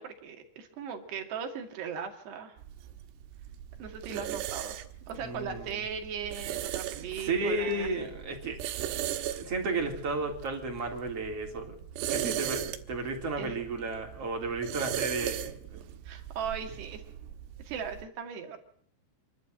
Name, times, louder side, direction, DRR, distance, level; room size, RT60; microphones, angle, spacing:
voice 1, 0.0-2.6 3.8-4.8 5.1-7.9 13.4-13.6 16.1-17.0 17.6-18.6, right 7 dB, 60° right, 4 dB, 4.2 m, -38 dB
sound 1, 2.6-18.1, right 12 dB, 85° right, 4.0 m, -38 dB
voice 2, 5.1-5.8 7.0-8.6 9.3-15.8, right 3 dB, 30° right, 2 dB, 4.0 m, -33 dB
28.0 x 12.0 x 7.8 m, 0.64 s
omnidirectional pair, 5.9 m